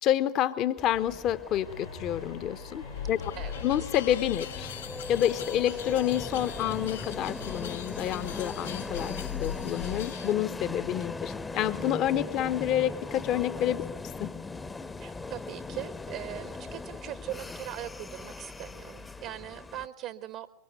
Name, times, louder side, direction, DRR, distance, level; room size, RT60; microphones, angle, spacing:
voice 1, 0.0-3.2 3.6-4.7 5.1-13.8 14.2-14.3, left 11 dB, 35° left, 13 dB, 1.0 m, -28 dB
sound 1, 0.8-19.9, left 3 dB, 10° left, 0.9 m, -39 dB
sound 2, 1.6-12.3, left 3 dB, 85° left, 7.1 m, -48 dB
sound 3, 2.8-10.3, left 9 dB, 60° left, 1.0 m, -40 dB
voice 2, 15.0-20.5, right 12 dB, 40° right, 14 dB, 1.0 m, -40 dB
24.5 x 23.5 x 9.6 m, 0.85 s
figure-of-eight pair, 90°, 0 cm